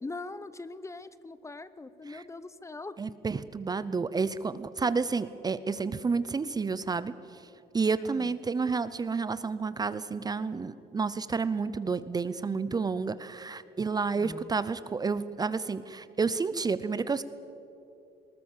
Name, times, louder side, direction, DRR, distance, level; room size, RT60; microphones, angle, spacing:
voice 1, 0.0-3.0 7.9-8.4 14.1-14.6, left 3 dB, 15° left, 15 dB, 0.7 m, -42 dB
voice 2, 3.0-7.1 7.7-17.2, right 4 dB, 25° right, 14 dB, 0.6 m, -30 dB
20.0 x 19.0 x 7.4 m, 2.8 s
cardioid pair, 110°, 17 cm